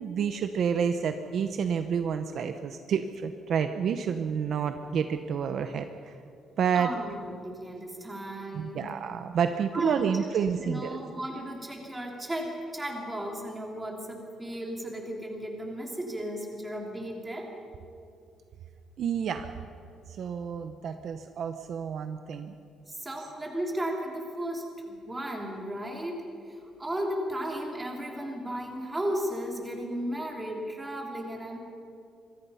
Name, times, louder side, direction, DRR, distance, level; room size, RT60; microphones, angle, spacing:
voice 1, 0.0-6.2 6.6-6.9 8.5-11.0 19.0-19.5 20.1-22.5, right 7 dB, 50° right, 8 dB, 0.8 m, -29 dB
voice 2, 6.7-8.9 9.7-10.3 10.6-17.5 22.9-31.6, right 1 dB, 10° right, 0 dB, 3.2 m, -35 dB
26.0 x 22.5 x 5.6 m, 2.6 s
cardioid pair, 175°, 0 cm